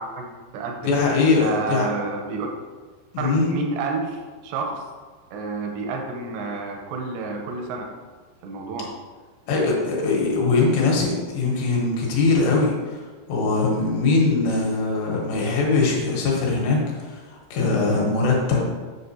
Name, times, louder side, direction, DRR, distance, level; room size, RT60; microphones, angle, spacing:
voice 1, 0.0-1.0 1.3-2.5 3.2-4.9 5.3-7.9 8.4-8.9, right 4 dB, 80° right, 2 dB, 2.7 m, -30 dB
voice 2, 0.8-1.8 3.1-3.5 9.5-13.0 13.3-18.8, left 3 dB, 70° left, -2 dB, 3.2 m, -21 dB
8.0 x 6.4 x 2.7 m, 1.4 s
omnidirectional pair, 5.5 m